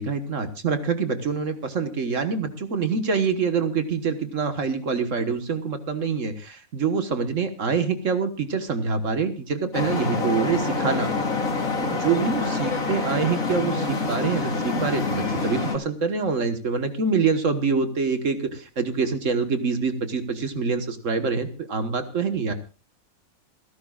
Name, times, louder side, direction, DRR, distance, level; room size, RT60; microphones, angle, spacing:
voice 1, 0.0-11.1 11.8-22.5, right 5 dB, 65° right, 8 dB, 1.6 m, -25 dB
Traffic noise roadway noise, 9.7-15.8, left 3 dB, 75° left, 2.7 m, -26 dB
29.0 x 11.5 x 2.4 m, 0.35 s
omnidirectional pair, 1.4 m